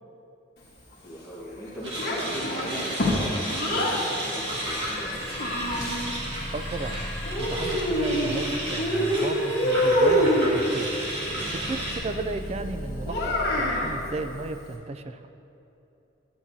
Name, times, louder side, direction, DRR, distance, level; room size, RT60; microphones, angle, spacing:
voice 1, 1.0-5.2, equal, 5° right, -13 dB, 1.4 m, -38 dB
sound 1, 1.8-12.0, right 1 dB, 60° right, 1.9 m, -33 dB
Child speech kid speaking, 2.0-4.0 4.9-6.1 7.3-8.4 8.8-10.5 13.1-13.9, equal, 55° left, 1.3 m, -25 dB
sound 2, 4.4-14.4, equal, 25° left, 1.1 m, -39 dB
voice 2, 6.5-7.0 7.4-10.9 11.5-15.3, right 2 dB, 30° right, 9 dB, 0.3 m, -34 dB
10.5 x 8.4 x 2.7 m, 2.8 s
head